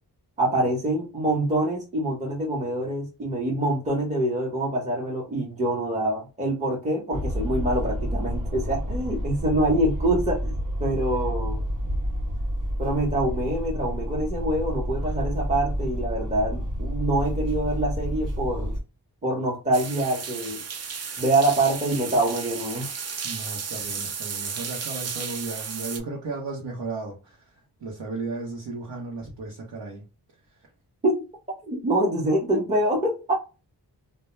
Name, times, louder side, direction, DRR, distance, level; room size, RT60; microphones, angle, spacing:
voice 1, 0.4-10.5 10.8-11.6 12.8-18.7 19.2-20.6 21.2-22.9 31.0-31.1 31.6-33.4, right 1 dB, 15° right, 0.9 m, -25 dB
sound 1, 7.1-18.8, equal, 60° right, 1.3 m, -29 dB
sound 2, 19.7-26.0, right 6 dB, 40° right, 0.4 m, -34 dB
voice 2, 23.2-30.0 30.5-30.7, right 3 dB, 80° right, 0.9 m, -35 dB
2.2 x 2.2 x 3.0 m
wide cardioid pair, 100°, 41 cm